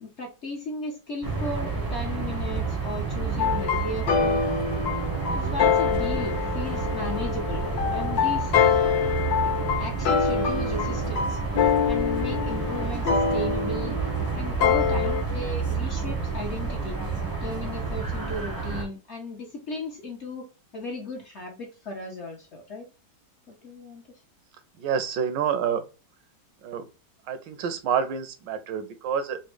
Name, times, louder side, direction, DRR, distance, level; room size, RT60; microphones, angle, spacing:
voice 1, 0.0-4.4 5.3-8.5 9.8-11.4 11.9-14.0 14.3-17.0 17.4-20.5 20.7-22.9 23.5-24.0, left 2 dB, 55° left, 1 dB, 0.8 m, -36 dB
sound 1, 1.2-18.8, right 4 dB, 35° right, 0.3 m, -30 dB
sound 2, 3.4-15.2, left 7 dB, 80° left, 1.5 m, -25 dB
voice 2, 24.8-25.8 26.6-26.8 27.3-29.4, right 7 dB, 80° right, 10 dB, 1.2 m, -28 dB
4.0 x 2.1 x 3.1 m, 0.30 s
omnidirectional pair, 1.9 m